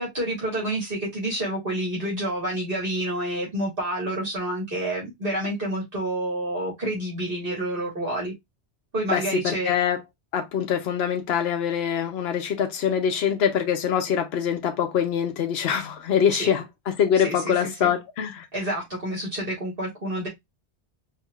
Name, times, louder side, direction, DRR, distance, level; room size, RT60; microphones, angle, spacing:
voice 1, 0.0-8.3 8.9-9.7 16.3-16.5 17.1-17.9 18.5-20.3, right 1 dB, 55° right, 1.8 m, -28 dB
voice 2, 9.1-10.0 10.3-18.5, left 8 dB, 75° left, 0.9 m, -24 dB
4.4 x 2.7 x 2.3 m
omnidirectional pair, 1.1 m